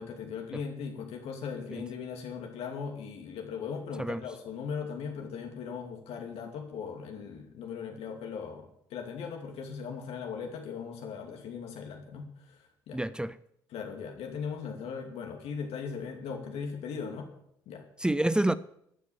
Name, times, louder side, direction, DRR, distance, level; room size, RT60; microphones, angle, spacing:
voice 1, 0.0-13.0 13.7-17.3 17.7-17.8, left 6 dB, 65° left, 3 dB, 2.7 m, -39 dB
voice 2, 12.9-13.4 18.0-18.6, right 1 dB, 5° right, 16 dB, 0.7 m, -28 dB
14.0 x 9.5 x 7.2 m, 0.73 s
hypercardioid pair, 50°, 11 cm